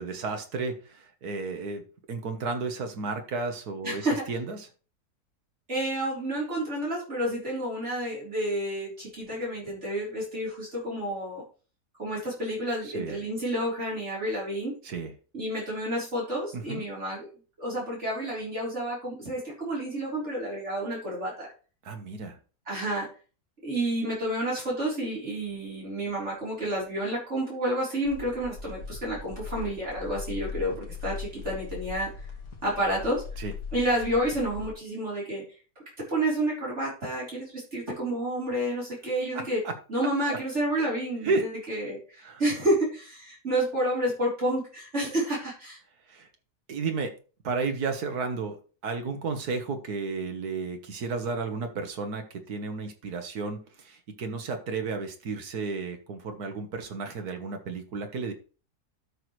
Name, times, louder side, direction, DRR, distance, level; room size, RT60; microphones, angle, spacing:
voice 1, 0.0-4.7 12.8-13.2 14.8-15.1 16.5-16.8 21.8-22.4 33.4-33.5 39.3-39.7 40.3-40.4 41.2-41.5 42.2-42.4 46.1-46.3 46.7-47.1 47.4-48.6 48.8-58.3, right 4 dB, 75° right, 6 dB, 1.8 m, -33 dB
voice 2, 3.8-4.2 5.7-11.4 12.0-14.7 15.3-17.3 17.6-21.5 22.7-23.1 23.6-32.1 32.6-33.2 33.7-35.4 36.1-39.6 39.9-45.8, right 1 dB, 45° right, -6 dB, 4.1 m, -30 dB
sound 1, 28.0-34.7, left 5 dB, 90° left, 2.4 m, -39 dB
12.5 x 6.1 x 3.2 m, 0.37 s
omnidirectional pair, 1.7 m